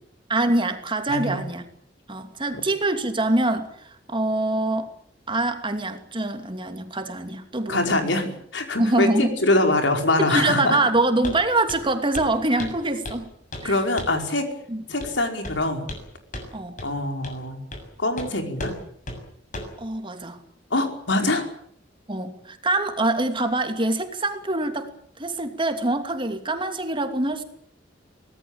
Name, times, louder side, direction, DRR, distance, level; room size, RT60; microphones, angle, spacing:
voice 1, 0.3-1.6 2.1-4.9 5.3-7.8 8.8-9.4 10.2-13.3 13.6-13.8 14.7-14.8 16.5-16.8 19.8-20.4 22.1-27.4, right 2 dB, 30° right, 7 dB, 2.8 m, -24 dB
voice 2, 1.1-1.4 7.7-10.8 13.6-14.5 14.9-15.9 16.8-17.6 18.0-18.7 20.7-21.5, left 2 dB, 80° left, 5 dB, 5.1 m, -23 dB
Walk footsteps, 11.2-11.4 11.7-11.9 12.1-12.3 12.6-13.2 13.5-13.7 14.0-14.2 15.0-15.2 15.4-16.1 16.3-16.5 16.8-16.9 17.2-17.4 17.7-17.9 18.2-18.3 18.6-18.8 19.1-19.2 19.5-19.8, left 1 dB, 45° left, 6.9 m, -34 dB
24.5 x 18.5 x 8.9 m, 0.64 s
head